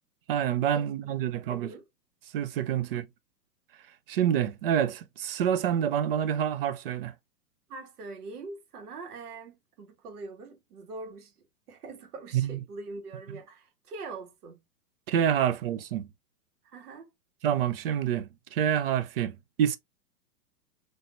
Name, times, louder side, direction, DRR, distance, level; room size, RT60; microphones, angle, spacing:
voice 1, 0.3-1.7 2.3-3.0 4.1-7.1 12.3-12.6 15.1-16.1 17.4-19.8, right 9 dB, 40° right, 0.5 m, -27 dB
voice 2, 1.5-1.9 2.7-3.0 7.7-11.3 11.7-14.6 15.4-15.5 16.6-17.1, right 3 dB, 65° right, 1.9 m, -43 dB
4.2 x 3.3 x 2.5 m
hypercardioid pair, 145°, 48 cm